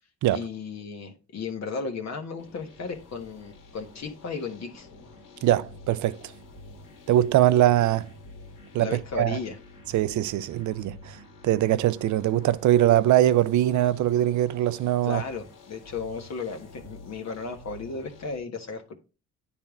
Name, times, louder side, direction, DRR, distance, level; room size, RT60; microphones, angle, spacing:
voice 1, 0.3-4.9 8.8-9.6 15.0-19.0, left 4 dB, 60° left, 1.3 m, -35 dB
sound 1, 2.4-18.4, left 2 dB, 90° left, 2.2 m, -49 dB
voice 2, 5.4-6.2 7.1-8.1 8.7-9.4 9.9-11.2 11.4-15.2, right 13 dB, 70° right, 0.5 m, -22 dB
9.7 x 3.5 x 3.6 m
cardioid pair, 85°, 31 cm